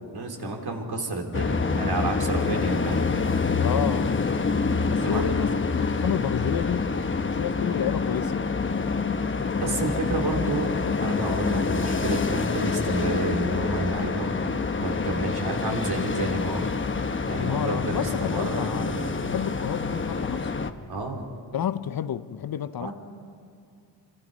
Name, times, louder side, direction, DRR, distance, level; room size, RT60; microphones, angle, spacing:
voice 1, 0.0-3.1 5.0-5.3 9.6-10.7 11.0-14.3 14.8-16.7 17.3-19.2 20.9-21.2 22.8-22.9, right 2 dB, 55° right, 3.4 m, -30 dB
sound 1, 1.3-20.7, left 4 dB, 25° left, 1.0 m, -27 dB
voice 2, 3.6-4.2 4.9-6.9 7.2-8.4 17.4-20.5 21.5-22.9, left 9 dB, 55° left, 0.7 m, -30 dB
25.5 x 25.5 x 5.4 m
cardioid pair, 105°, 44 cm